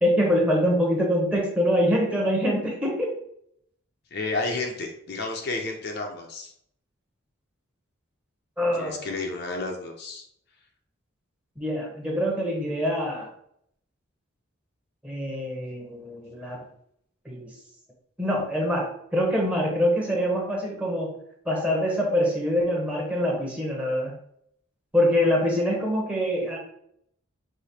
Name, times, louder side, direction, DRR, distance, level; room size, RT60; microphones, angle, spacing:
voice 1, 0.0-3.2 8.6-9.1 11.6-13.3 15.0-16.6 17.2-17.5 18.2-21.2 21.4-24.1 24.9-26.6, equal, 5° right, -2 dB, 1.0 m, -24 dB
voice 2, 4.1-6.5 8.7-10.2, left 3 dB, 50° left, 1 dB, 0.7 m, -31 dB
4.9 x 2.1 x 4.2 m, 0.69 s
head